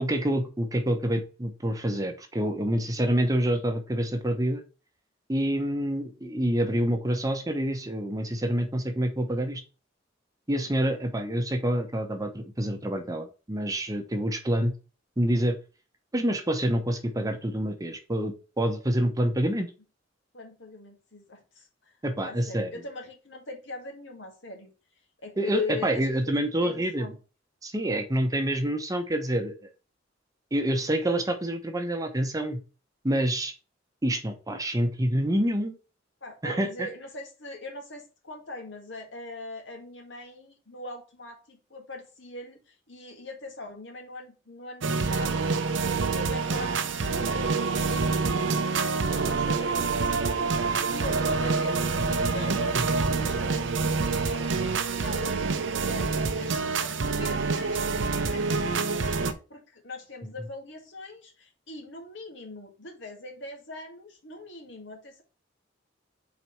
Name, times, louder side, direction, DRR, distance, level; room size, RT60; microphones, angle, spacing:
voice 1, 0.0-4.6 5.3-9.6 10.5-14.7 15.2-15.6 16.1-19.7 22.0-22.7 25.4-27.1 27.6-29.7 30.5-32.6 33.0-33.5 34.0-35.8 36.4-36.9, right 1 dB, 20° right, 6 dB, 0.9 m, -27 dB
voice 2, 20.3-21.9 22.2-24.7 25.2-26.3 26.6-27.2 36.2-45.5 45.8-50.5 50.9-54.5 54.9-65.2, left 2 dB, 70° left, 3 dB, 1.8 m, -41 dB
sound 1, 44.8-59.3, right 4 dB, 70° right, 0.7 m, -27 dB
4.6 x 4.1 x 5.6 m, 0.33 s
head